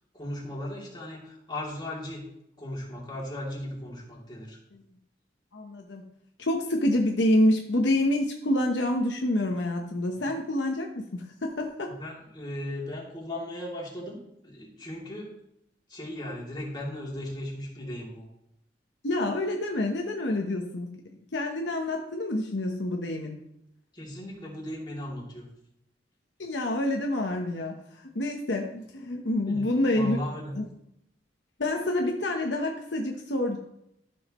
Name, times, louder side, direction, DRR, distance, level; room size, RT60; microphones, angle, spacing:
voice 1, 0.1-2.2 2.6-4.6 10.1-10.3 11.9-15.3 15.9-18.3 23.9-25.5 29.5-29.7 29.9-30.5, left 1 dB, 25° left, -4 dB, 2.7 m, -37 dB
voice 2, 5.5-6.1 6.4-11.9 19.0-20.9 21.3-23.4 26.4-30.2 30.6-30.7 31.6-33.6, left 1 dB, 70° left, 2 dB, 1.0 m, -27 dB
13.5 x 6.3 x 3.0 m, 0.78 s
head